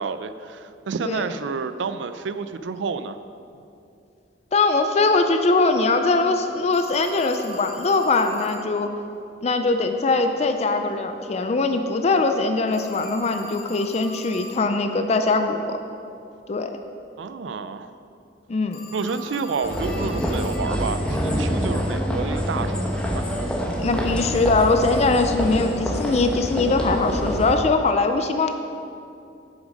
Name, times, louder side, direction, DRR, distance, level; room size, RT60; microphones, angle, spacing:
voice 1, 0.0-3.2 17.2-17.9 18.9-23.2, right 5 dB, 80° right, 11 dB, 0.4 m, -29 dB
voice 2, 4.5-8.9 9.4-15.8 16.5-16.7 18.5-18.9 23.8-28.6, left 3 dB, 35° left, 7 dB, 0.4 m, -21 dB
Telephone, 6.7-8.7 12.7-14.7 18.7-20.7, left 1 dB, 60° left, 0.9 m, -41 dB
sound 1, 19.6-27.6, equal, 5° left, 1.0 m, -26 dB
7.3 x 7.2 x 5.1 m, 2.5 s
head